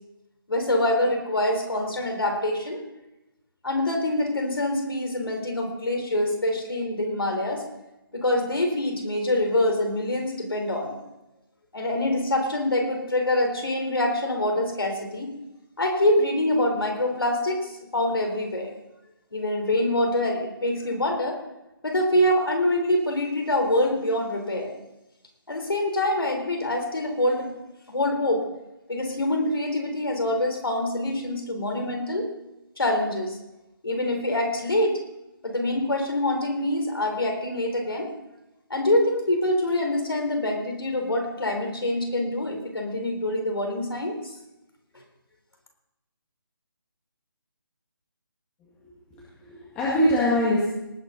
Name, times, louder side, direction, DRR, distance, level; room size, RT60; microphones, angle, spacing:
voice 1, 0.5-2.8 3.6-7.7 8.1-11.0 11.7-15.3 15.8-18.7 19.3-21.4 21.8-24.7 25.5-27.5 27.9-28.5 28.9-32.3 32.8-33.4 33.8-35.0 35.4-38.1 38.7-44.2, left 1 dB, 80° left, 3 dB, 4.0 m, -25 dB
voice 2, 48.8-50.7, left 1 dB, 10° left, -6 dB, 2.0 m, -24 dB
19.0 x 9.5 x 4.1 m, 0.95 s
figure-of-eight pair, 155°, 12 cm